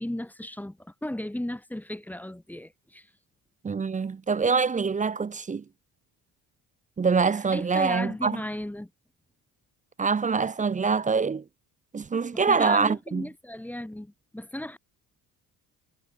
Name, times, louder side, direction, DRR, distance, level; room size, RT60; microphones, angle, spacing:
voice 1, 0.0-3.1 7.5-8.9 12.3-14.8, left 1 dB, 5° left, 1.3 m, -35 dB
voice 2, 3.6-5.6 7.0-8.4 10.0-11.4 11.9-13.3, right 5 dB, 20° right, 0.7 m, -25 dB
cardioid pair, 115°, 36 cm